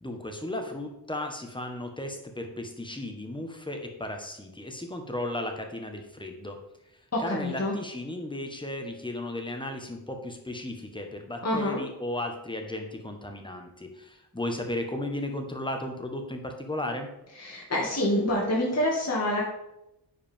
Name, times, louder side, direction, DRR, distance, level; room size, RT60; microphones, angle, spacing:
voice 1, 0.0-6.6 7.2-17.1, left 1 dB, 10° left, 4 dB, 1.4 m, -35 dB
voice 2, 7.1-7.7 11.4-11.8 17.4-19.4, left 1 dB, 40° left, -5 dB, 2.4 m, -27 dB
9.6 x 5.1 x 3.7 m, 0.84 s
cardioid pair, 65°, 40 cm